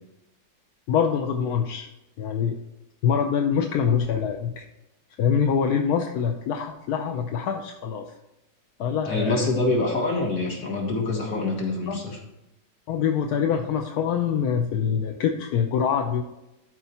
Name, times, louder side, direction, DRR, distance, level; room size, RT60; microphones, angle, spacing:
voice 1, 0.9-1.9 2.2-2.6 3.0-4.6 5.2-8.1 8.8-9.5 11.9-12.0 12.9-16.2, left 7 dB, 70° left, 4 dB, 1.1 m, -24 dB
voice 2, 9.1-12.2, left 2 dB, 50° left, 0 dB, 2.0 m, -25 dB
12.5 x 4.6 x 4.3 m, 0.93 s
omnidirectional pair, 2.0 m